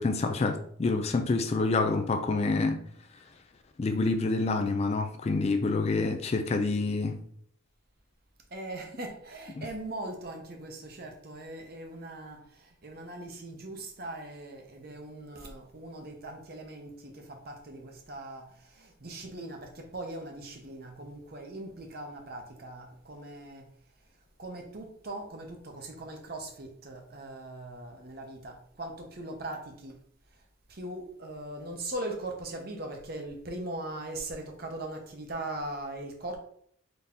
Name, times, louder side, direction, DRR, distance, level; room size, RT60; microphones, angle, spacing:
voice 1, 0.0-2.8 3.8-7.2 9.6-9.7, left 3 dB, 30° left, 0.3 m, -27 dB
voice 2, 8.5-23.7 24.4-30.0 30.7-36.4, right 1 dB, 50° right, 0.8 m, -40 dB
3.9 x 2.7 x 3.6 m
head